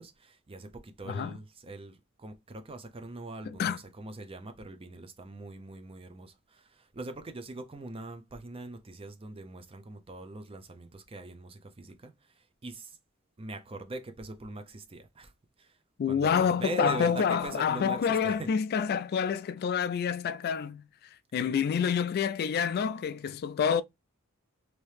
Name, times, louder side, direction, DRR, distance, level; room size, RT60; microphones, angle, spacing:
voice 1, 0.0-13.0 13.4-15.3 15.6-15.8 16.1-18.5, right 2 dB, 25° right, 0.5 m, -42 dB
voice 2, 16.0-20.8 21.3-23.8, left 7 dB, 45° left, 0.3 m, -28 dB
3.0 x 2.7 x 3.2 m
head